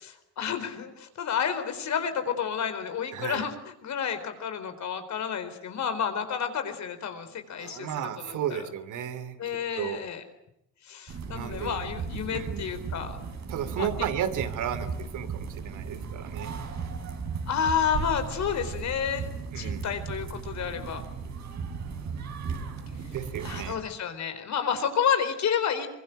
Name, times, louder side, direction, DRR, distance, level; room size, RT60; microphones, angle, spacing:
voice 1, 0.0-7.9 8.2-8.6 9.4-10.2 10.8-13.2 13.8-13.9 17.5-19.3 19.6-21.0 23.4-25.9, left 7 dB, 65° left, 9 dB, 4.3 m, -30 dB
voice 2, 3.1-3.5 7.6-10.0 11.3-11.8 12.3-12.8 13.5-16.6 19.5-20.0 23.1-23.8, right 9 dB, 80° right, 12 dB, 2.7 m, -34 dB
sound 1, 11.1-23.7, right 5 dB, 65° right, 5.7 m, -36 dB
24.0 x 22.5 x 9.2 m, 0.81 s
cardioid pair, 90°, 30 cm